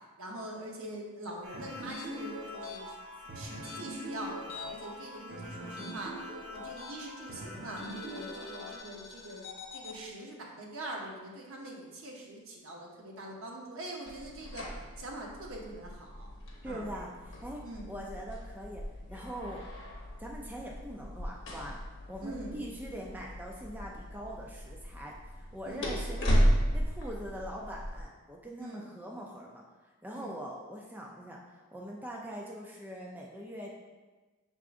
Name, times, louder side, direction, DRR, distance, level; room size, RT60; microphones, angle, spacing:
voice 1, 0.2-3.0 3.3-6.1 6.5-14.7 15.0-16.3 16.6-16.8 17.6-17.9 22.2-22.7 25.6-26.1 28.6-28.9 30.1-30.3, right 1 dB, 75° right, -1 dB, 0.8 m, -43 dB
sound 1, 1.4-8.8, equal, 45° right, 1.2 m, -42 dB
sound 2, 1.8-4.9 5.2-7.2 7.8-10.0, left 6 dB, 85° left, 0.8 m, -48 dB
sound 3, 14.1-28.0, equal, 55° left, 0.9 m, -35 dB
voice 2, 16.6-18.8 19.1-19.6 20.2-21.8 22.1-26.4 26.7-33.7, equal, 10° right, -2 dB, 0.3 m, -42 dB
5.8 x 3.6 x 2.5 m, 1.3 s
head